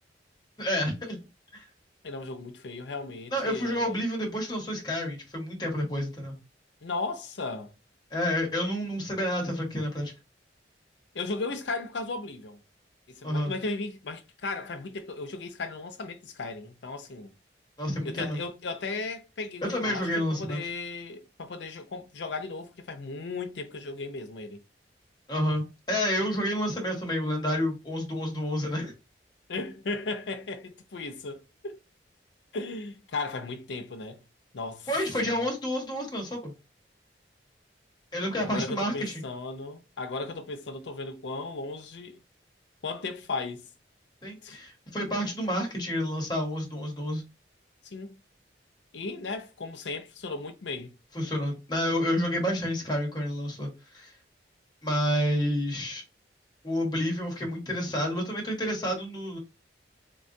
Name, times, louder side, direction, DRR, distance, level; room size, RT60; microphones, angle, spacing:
voice 1, 0.6-1.2 1.5-1.7 3.3-6.4 8.1-10.1 13.2-13.5 17.8-18.4 19.6-20.6 25.3-28.9 34.9-36.5 38.1-39.2 44.2-47.2 51.1-54.1 54.8-56.0 56.6-59.4, equal, 25° left, 1.0 m, -29 dB
voice 2, 2.0-4.0 6.8-7.7 11.1-12.6 13.1-17.3 18.0-24.6 29.5-31.8 32.5-34.2 34.5-34.9 35.2-35.5 38.4-42.2 42.8-43.6 44.4-44.6 47.8-48.2 48.9-50.9, left 3 dB, 80° left, 0.6 m, -36 dB
3.5 x 2.3 x 2.6 m
head